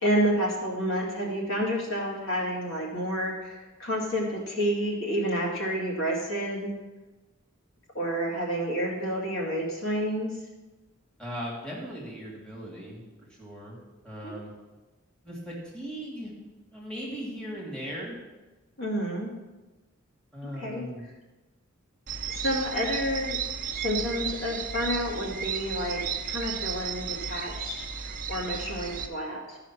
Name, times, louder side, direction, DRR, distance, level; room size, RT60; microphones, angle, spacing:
voice 1, 0.0-6.7 7.9-10.3 14.2-14.3 18.8-19.3 20.6-20.8 22.3-23.4 23.8-29.6, equal, 65° left, -3 dB, 2.4 m, -29 dB
voice 2, 11.2-13.0 13.4-13.8 14.0-14.5 15.2-16.3 16.7-18.2 20.3-21.1, equal, 5° left, -5 dB, 2.3 m, -38 dB
sound 1, 22.1-29.1, right 7 dB, 40° right, 0.7 m, -34 dB
13.5 x 5.0 x 6.0 m, 1.1 s
head